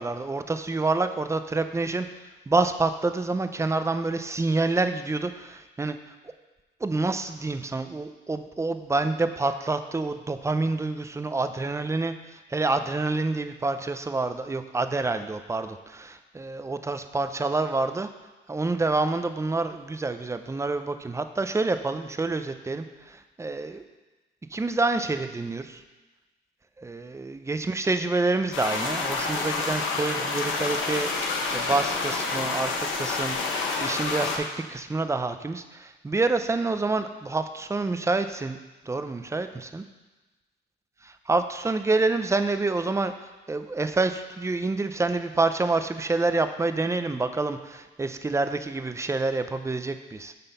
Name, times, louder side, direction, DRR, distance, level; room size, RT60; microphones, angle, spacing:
voice 1, 0.0-2.1 2.5-6.1 6.8-18.1 18.5-23.8 24.5-25.8 26.8-33.4 33.8-38.6 38.9-39.8 41.0-43.1 43.5-50.3, right 3 dB, 15° right, 9 dB, 0.5 m, -27 dB
sound 1, 28.5-34.4, left 4 dB, 80° left, 1.2 m, -28 dB
8.9 x 4.2 x 5.4 m, 1.2 s
cardioid pair, 90°, 20 cm